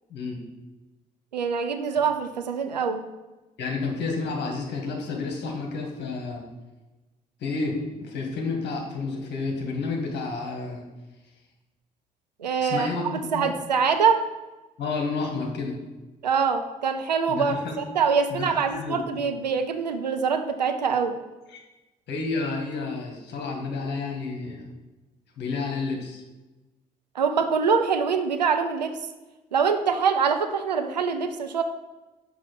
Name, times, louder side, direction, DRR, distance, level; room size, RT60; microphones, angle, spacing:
voice 1, 0.1-0.4 3.6-6.4 7.4-10.8 12.6-13.6 14.8-15.8 17.3-17.8 18.3-19.0 21.5-21.6 22.1-24.7 25.4-26.2, left 4 dB, 55° left, 1 dB, 1.9 m, -30 dB
voice 2, 1.3-3.0 12.4-14.2 16.2-21.2 27.1-28.9 29.5-31.6, right 6 dB, 85° right, 7 dB, 0.5 m, -24 dB
6.0 x 5.5 x 5.9 m, 1.1 s
figure-of-eight pair, 45°, 21 cm